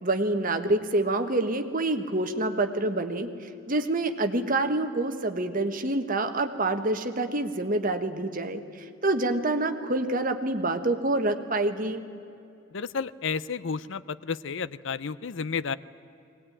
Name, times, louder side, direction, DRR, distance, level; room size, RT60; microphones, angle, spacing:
voice 1, 0.0-3.3 3.7-12.0, right 2 dB, 40° right, 7 dB, 1.4 m, -27 dB
voice 2, 12.7-15.8, left 5 dB, 60° left, 17 dB, 0.5 m, -31 dB
21.5 x 18.5 x 9.9 m, 2.8 s
head